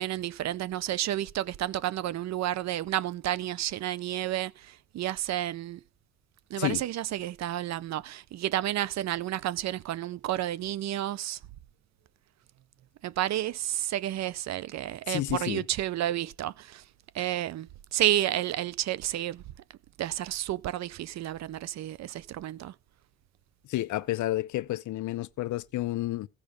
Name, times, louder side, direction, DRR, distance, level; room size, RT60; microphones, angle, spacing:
voice 1, 0.0-5.8 6.5-11.4 13.0-16.8 17.1-19.4 20.0-22.7, right 13 dB, 60° right, 0.5 m, -31 dB
voice 2, 15.1-15.6 23.7-26.3, left 16 dB, 75° left, 0.6 m, -30 dB
15.0 x 5.2 x 5.1 m
cardioid pair, 90°, 30 cm